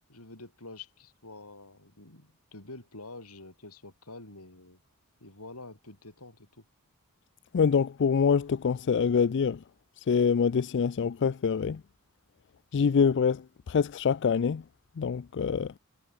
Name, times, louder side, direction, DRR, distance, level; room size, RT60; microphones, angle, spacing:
voice 1, 0.1-4.8 5.2-6.6, left 2 dB, 85° left, 8.0 m, -47 dB
voice 2, 7.5-9.6 10.0-11.8 12.7-14.6 15.0-15.7, left 6 dB, 55° left, 0.4 m, -25 dB
head